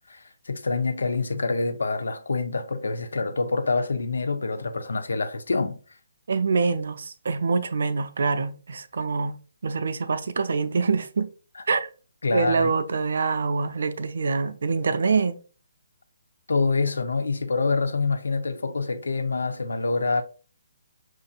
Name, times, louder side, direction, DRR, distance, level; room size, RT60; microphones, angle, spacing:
voice 1, 0.1-5.8 12.2-12.7 16.5-20.2, left 3 dB, 70° left, 0.6 m, -26 dB
voice 2, 6.3-9.4 9.6-11.3 11.7-11.9 12.3-15.4, right 4 dB, 60° right, 0.4 m, -25 dB
5.8 x 2.5 x 2.3 m
figure-of-eight pair, 140°, 0 cm